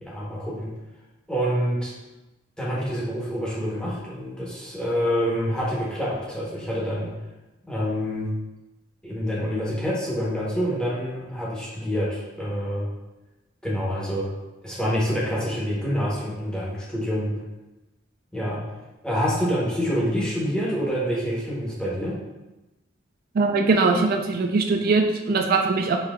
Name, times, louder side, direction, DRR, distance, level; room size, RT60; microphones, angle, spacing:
voice 1, 0.1-0.7 1.3-1.9 2.6-7.1 7.7-8.3 9.0-12.9 13.6-14.3 14.6-17.3 18.3-18.6 19.0-22.2, equal, 5° left, -7 dB, 0.9 m, -27 dB
voice 2, 23.3-26.0, right 3 dB, 50° right, 4 dB, 0.3 m, -21 dB
5.4 x 2.8 x 2.4 m, 1.0 s
head